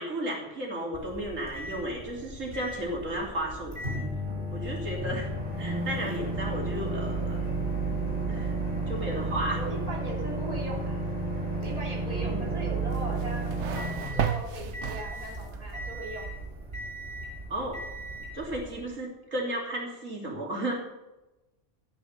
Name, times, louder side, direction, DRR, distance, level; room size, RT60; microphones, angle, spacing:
voice 1, 0.0-4.1 4.5-5.3 5.6-7.4 8.3-8.5 8.9-9.6 12.1-12.5 17.5-17.8 18.3-20.8, right 1 dB, 85° right, -1 dB, 3.6 m, -34 dB
Microwave oven, 0.9-18.9, right 2 dB, 45° right, 5.5 m, -33 dB
voice 2, 9.0-11.0 11.6-16.3, right 1 dB, 30° right, -3 dB, 3.3 m, -40 dB
sound 1, 12.9-15.6, right 8 dB, 65° right, 1.1 m, -33 dB
13.5 x 9.9 x 6.6 m, 1.0 s
omnidirectional pair, 1.3 m